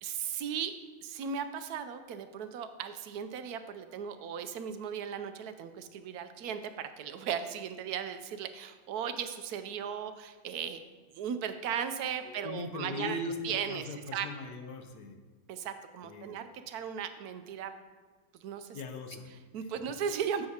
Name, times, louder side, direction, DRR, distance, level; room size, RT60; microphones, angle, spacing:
voice 1, 0.0-0.7 1.0-10.8 11.1-14.3 15.5-17.7 18.4-18.8 19.3-20.5, right 8 dB, 80° right, 10 dB, 1.1 m, -37 dB
voice 2, 12.4-13.3 13.7-15.1 16.0-16.4 18.7-19.3, left 2 dB, 90° left, 6 dB, 1.4 m, -39 dB
10.5 x 7.5 x 2.8 m, 1.4 s
omnidirectional pair, 1.6 m